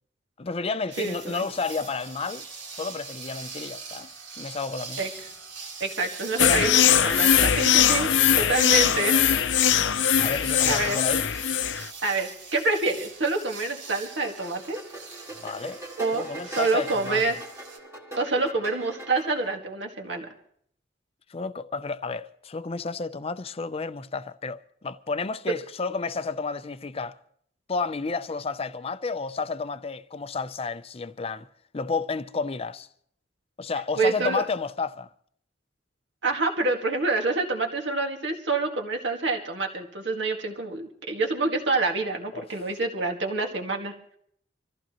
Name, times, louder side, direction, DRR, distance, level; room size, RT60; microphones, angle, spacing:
voice 1, 0.4-2.5 2.7-4.1 4.4-5.1 6.4-6.8 8.1-9.4 10.2-11.3 15.4-15.8 16.1-17.4 21.3-27.2 27.7-31.5 31.7-32.9 33.6-35.1 42.3-42.7, left 4 dB, 30° left, 0.5 m, -32 dB
sound 1, 0.9-17.8, right 4 dB, 80° right, 2.3 m, -42 dB
voice 2, 1.0-1.4 5.0-5.1 5.8-8.1 8.4-9.2 10.7-11.0 12.0-14.8 16.0-17.4 18.2-20.3 34.0-34.5 36.2-43.9, right 3 dB, 65° right, 1.9 m, -27 dB
sound 2, 6.4-11.9, left 9 dB, 70° left, 0.6 m, -21 dB
sound 3, 13.9-19.5, right 2 dB, 15° right, 1.8 m, -42 dB
26.0 x 14.5 x 3.0 m
head